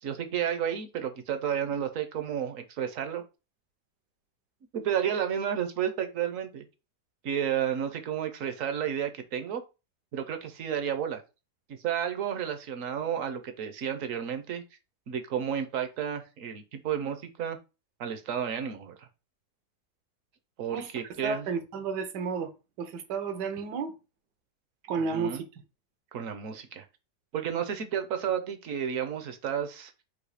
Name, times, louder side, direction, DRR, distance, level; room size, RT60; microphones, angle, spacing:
voice 1, 0.0-3.2 4.7-6.6 7.2-9.6 10.1-11.2 11.7-14.6 15.1-17.6 18.0-19.1 20.6-21.5 25.0-25.4 26.1-26.8 27.3-29.9, right 8 dB, 60° right, 0.9 m, -32 dB
voice 2, 21.2-22.5 22.8-24.0 24.8-25.5, right 5 dB, 80° right, 1.4 m, -32 dB
4.0 x 2.7 x 4.7 m
omnidirectional pair, 1.8 m